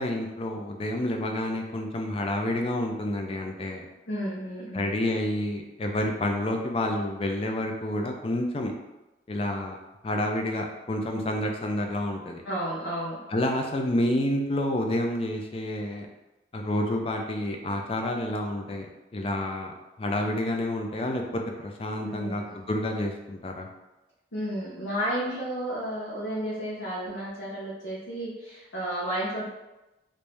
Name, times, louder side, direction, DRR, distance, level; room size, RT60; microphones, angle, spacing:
voice 1, 0.0-3.9 4.7-8.7 9.3-9.8 10.0-12.4 13.3-16.1 16.5-18.9 19.1-19.7 20.0-23.7, left 1 dB, 30° left, 2 dB, 0.4 m, -29 dB
voice 2, 4.1-5.0 12.4-13.2 22.0-22.6 24.3-29.4, right 1 dB, 85° left, -8 dB, 0.8 m, -32 dB
3.2 x 2.6 x 3.3 m, 1.0 s
head